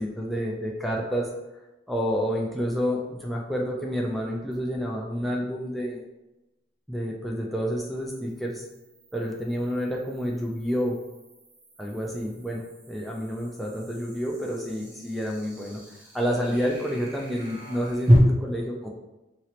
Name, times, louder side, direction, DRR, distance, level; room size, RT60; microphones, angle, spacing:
voice 1, 0.0-1.3 1.9-6.0 6.9-8.6 9.1-11.0 11.8-15.8 16.1-18.9, equal, ahead, -2 dB, 0.3 m, -29 dB
sound 1, 4.5-4.6 8.0-18.2, equal, 35° right, 0.9 m, -31 dB
3.0 x 2.9 x 2.8 m, 1.0 s
head